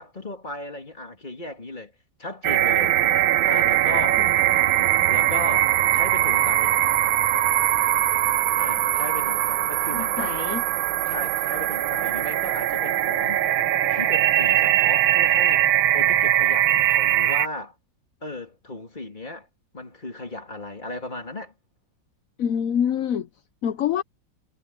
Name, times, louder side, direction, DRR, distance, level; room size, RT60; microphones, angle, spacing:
voice 1, 0.0-1.9 2.2-3.0 3.5-4.3 4.8-6.8 8.6-10.4 11.1-13.4 13.9-17.8 18.2-19.5 19.7-21.5, left 2 dB, 25° left, 2.9 m, -36 dB
sound 1, 2.4-17.5, right 12 dB, 85° right, 1.5 m, -21 dB
voice 2, 9.9-10.6 22.4-23.3 23.6-24.0, left 8 dB, 60° left, 1.0 m, -26 dB
omnidirectional pair, 2.1 m